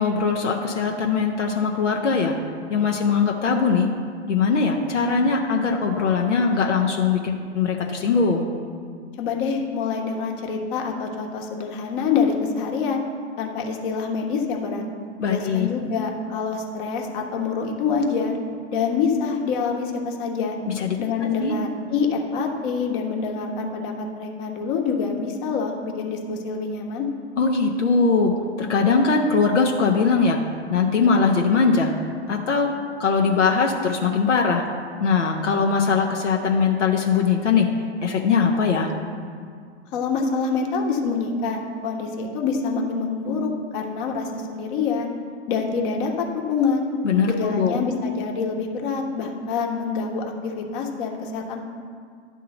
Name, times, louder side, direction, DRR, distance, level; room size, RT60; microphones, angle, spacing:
voice 1, 0.0-2.4 2.7-3.9 4.3-8.5 15.2-15.7 20.7-21.0 21.4-21.6 27.4-30.4 30.7-31.9 32.3-32.7 33.0-34.7 35.0-37.7 38.0-38.9 47.0-47.8, left 5 dB, 85° left, 1 dB, 0.9 m, -21 dB
voice 2, 9.2-13.0 13.4-14.8 15.3-18.3 18.7-20.6 21.0-27.1 39.9-45.1 45.5-46.8 47.3-51.6, left 5 dB, 45° left, 1 dB, 1.3 m, -26 dB
11.0 x 3.7 x 6.9 m, 2.1 s
hypercardioid pair, 105°, 35 cm